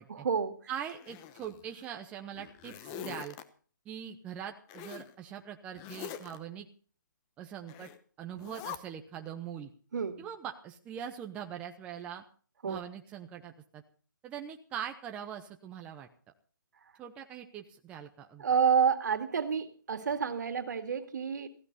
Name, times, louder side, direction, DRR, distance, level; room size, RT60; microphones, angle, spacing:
voice 1, 0.1-0.5 9.9-10.2 12.6-12.8 18.4-21.5, right 6 dB, 60° right, 8 dB, 2.2 m, -29 dB
voice 2, 0.7-3.4 3.9-6.7 7.4-7.9 8.2-9.7 10.2-12.2 12.6-13.8 14.2-16.1 17.0-18.4, right 9 dB, 10° right, 4 dB, 0.8 m, -42 dB
Zipper (clothing), 0.9-1.9 2.3-3.4 4.7-5.1 5.7-6.4 7.7-8.0 8.4-8.8, left 10 dB, 20° left, 0.9 m, -44 dB
16.5 x 15.5 x 4.2 m, 0.42 s
hypercardioid pair, 160°, 11 cm